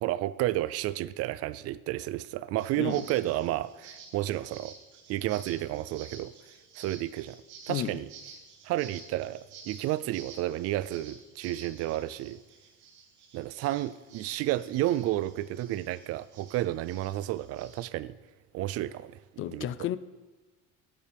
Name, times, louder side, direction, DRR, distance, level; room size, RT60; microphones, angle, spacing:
voice 1, 0.0-4.8 5.1-6.3 6.8-8.1 8.6-12.4 13.3-18.2 18.5-19.2 19.5-19.7, right 15 dB, 55° right, 0.4 m, -31 dB
sound 1, 2.6-17.8, right 5 dB, 75° right, 3.2 m, -51 dB
voice 2, 7.7-8.0 19.4-20.0, left 12 dB, 45° left, 0.5 m, -32 dB
15.5 x 9.7 x 3.5 m
cardioid pair, 135°, 29 cm